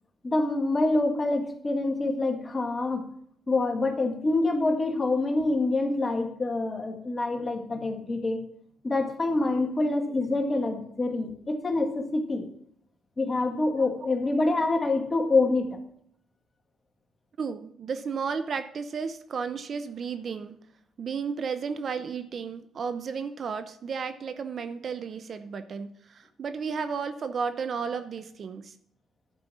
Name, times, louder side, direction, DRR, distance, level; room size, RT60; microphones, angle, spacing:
voice 1, 0.2-3.1 3.5-8.4 8.8-12.5 13.2-15.8, left 2 dB, 30° left, 4 dB, 1.8 m, -26 dB
voice 2, 17.4-20.6 21.0-28.7, right 5 dB, 50° right, 11 dB, 0.7 m, -33 dB
11.5 x 5.3 x 6.1 m, 0.67 s
cardioid pair, 90°, 0 cm